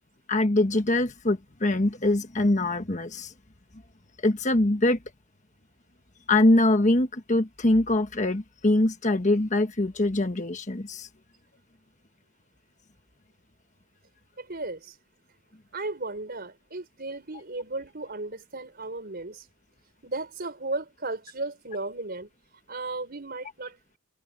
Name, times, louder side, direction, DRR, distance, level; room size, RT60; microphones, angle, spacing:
voice 1, 0.3-3.3 4.2-5.0 6.3-11.1, left 2 dB, 35° left, 1.3 m, -23 dB
voice 2, 14.4-15.0 15.7-19.5 20.0-22.3 22.7-23.8, right 2 dB, 45° right, 4.5 m, -35 dB
head